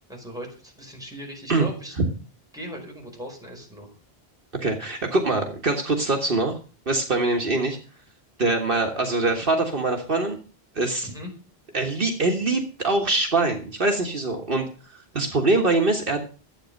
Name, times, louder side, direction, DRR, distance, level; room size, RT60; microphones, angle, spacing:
voice 1, 0.1-2.0 2.5-3.9 11.0-11.3, equal, 5° right, -1 dB, 5.0 m, -38 dB
voice 2, 4.6-6.6 6.9-7.8 8.4-10.4 10.8-11.1 11.7-14.6 14.9-16.2, right 2 dB, 60° right, 3 dB, 1.8 m, -23 dB
12.5 x 8.5 x 6.5 m, 0.37 s
omnidirectional pair, 1.0 m